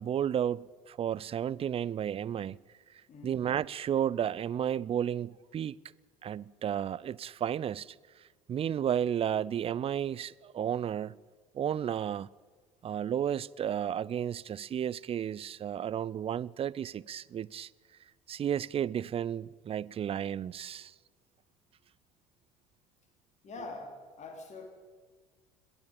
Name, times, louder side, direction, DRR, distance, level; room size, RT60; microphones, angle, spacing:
voice 1, 0.0-2.6 3.2-5.8 6.2-8.0 8.5-11.2 11.5-12.3 12.8-17.7 18.3-20.9, right 9 dB, 30° right, 0.5 m, -32 dB
voice 2, 3.1-3.5 23.4-24.7, left 3 dB, 40° left, 3.9 m, -44 dB
21.5 x 15.5 x 8.6 m
figure-of-eight pair, 65°, 19 cm